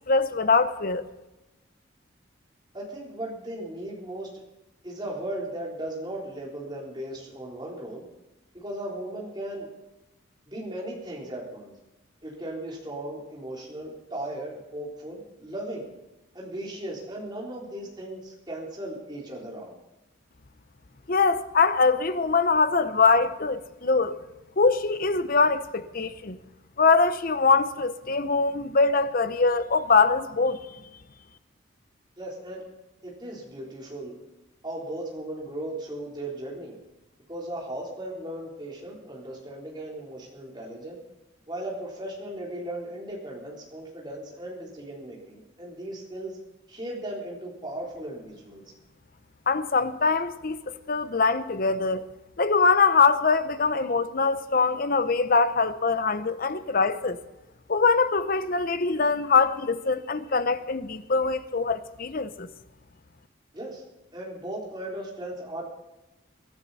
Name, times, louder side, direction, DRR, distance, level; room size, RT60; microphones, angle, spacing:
voice 1, 0.1-1.0 21.1-24.2 24.6-26.4 26.8-30.6 49.5-50.6 50.9-52.1 52.4-57.2 57.7-62.5, left 4 dB, 45° left, 0.7 m, -23 dB
voice 2, 2.7-4.3 4.8-8.0 8.5-9.7 10.5-11.7 12.2-15.9 16.3-19.8 32.2-32.6 33.0-34.1 34.6-36.8 37.3-41.0 41.5-46.4 46.7-48.6 63.5-63.8 64.1-65.6, right 1 dB, 20° right, 3.7 m, -37 dB
22.5 x 12.5 x 4.2 m
head